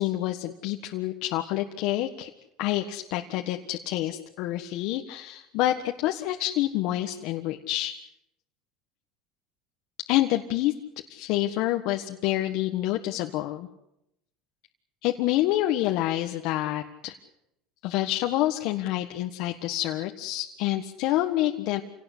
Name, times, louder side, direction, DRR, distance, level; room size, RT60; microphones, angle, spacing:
voice 1, 0.0-2.3 2.6-7.9 10.1-10.7 11.1-13.7 15.0-17.1 17.8-21.8, left 14 dB, 65° left, 4 dB, 1.6 m, -27 dB
27.5 x 18.0 x 8.5 m, 0.84 s
supercardioid pair, 125°, 0 cm